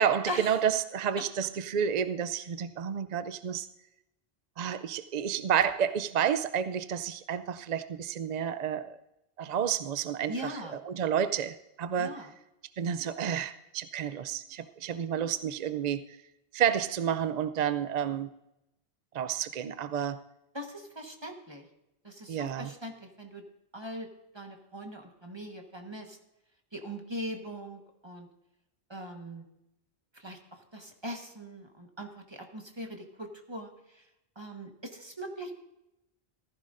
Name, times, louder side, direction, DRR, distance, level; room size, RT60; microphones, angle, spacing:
voice 1, 0.0-3.7 4.6-9.0 9.4-12.3 12.8-16.0 16.5-18.3 19.1-20.2 22.3-22.7, right 8 dB, 55° right, 13 dB, 0.5 m, -30 dB
voice 2, 10.3-10.8 11.9-12.3 20.5-21.6 22.0-23.4 23.7-24.1 24.3-26.2 26.7-28.3 28.9-29.4 30.1-33.7 34.4-35.5, equal, 25° right, 3 dB, 1.4 m, -40 dB
15.0 x 14.5 x 2.5 m, 0.88 s
omnidirectional pair, 1.0 m